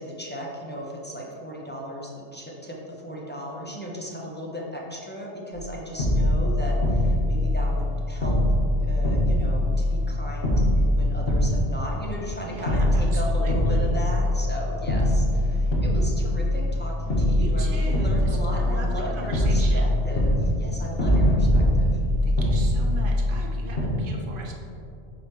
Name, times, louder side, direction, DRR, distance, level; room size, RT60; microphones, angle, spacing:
voice 1, 0.0-8.4 8.8-22.0, equal, 10° left, -3 dB, 0.8 m, -36 dB
sound 1, 5.5-5.7 6.0-7.9 8.2-10.1 10.4-12.3 12.7-14.6 14.9-16.8 17.1-19.0 19.3-23.5 23.8-23.9, left 1 dB, 65° left, 1.6 m, -22 dB
voice 2, 12.5-13.9 17.4-19.9 22.2-24.5, right 2 dB, 55° right, 0 dB, 1.0 m, -39 dB
8.0 x 5.0 x 3.1 m, 2.5 s
omnidirectional pair, 1.1 m